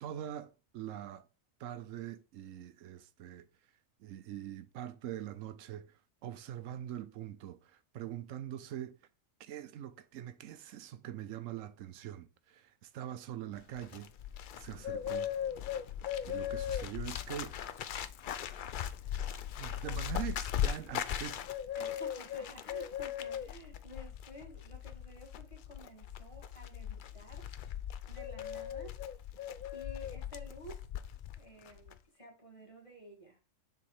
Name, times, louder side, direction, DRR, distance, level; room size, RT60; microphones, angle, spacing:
voice 1, 0.0-1.3 1.6-3.5 4.0-5.9 6.2-8.9 9.4-14.1 14.6-15.3 16.3-17.5 19.6-21.4, right 11 dB, 80° right, 1.0 m, -43 dB
Bird, 13.6-31.4 31.7-32.0, left 10 dB, 65° left, 0.5 m, -38 dB
voice 2, 21.8-27.5 28.1-29.0 29.7-30.8 31.4-33.4, equal, 25° left, 1.8 m, -52 dB
7.1 x 3.6 x 4.7 m
omnidirectional pair, 1.3 m